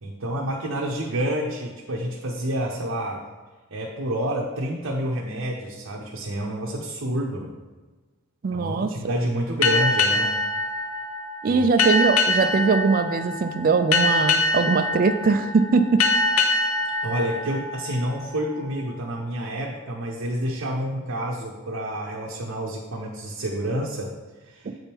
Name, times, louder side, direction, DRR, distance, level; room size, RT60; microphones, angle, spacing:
voice 1, 0.0-3.2 3.7-7.5 8.5-10.3 11.4-11.7 17.0-24.1 24.5-24.7, equal, 70° right, -3 dB, 0.8 m, -28 dB
voice 2, 8.4-8.9 11.4-16.0 24.6-24.7, right 4 dB, 45° right, 8 dB, 0.4 m, -21 dB
sound 1, 9.6-18.8, left 2 dB, 80° left, 0.6 m, -24 dB
7.8 x 3.5 x 4.4 m, 1.3 s
head